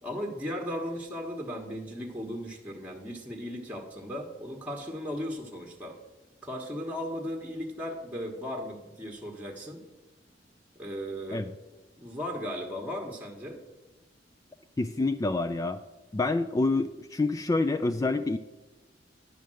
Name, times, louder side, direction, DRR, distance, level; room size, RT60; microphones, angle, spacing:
voice 1, 0.0-6.0 6.4-9.8 10.8-11.5 12.0-13.6, equal, 10° right, 0 dB, 1.2 m, -36 dB
voice 2, 14.8-15.8 16.1-18.4, left 3 dB, 20° left, 9 dB, 0.3 m, -27 dB
10.5 x 5.1 x 7.6 m, 1.1 s
head